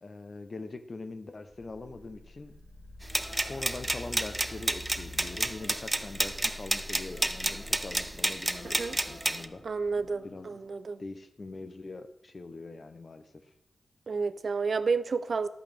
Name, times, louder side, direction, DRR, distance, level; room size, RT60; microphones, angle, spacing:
voice 1, 0.0-2.5 3.3-9.6 10.2-10.5 11.0-13.4, left 3 dB, 45° left, 9 dB, 0.9 m, -43 dB
sound 1, 1.5-10.3, left 1 dB, 5° left, 1.2 m, -47 dB
sound 2, 3.1-4.8 5.2-6.6 7.0-8.1 8.5-9.7 9.9-10.7, left 2 dB, 65° left, 1.7 m, -52 dB
sound 3, 3.1-9.5, right 1 dB, 15° right, 0.6 m, -30 dB
voice 2, 9.6-11.0 14.1-15.5, right 4 dB, 65° right, 12 dB, 0.5 m, -30 dB
10.5 x 8.6 x 3.5 m, 0.80 s
cardioid pair, 60°, 0 cm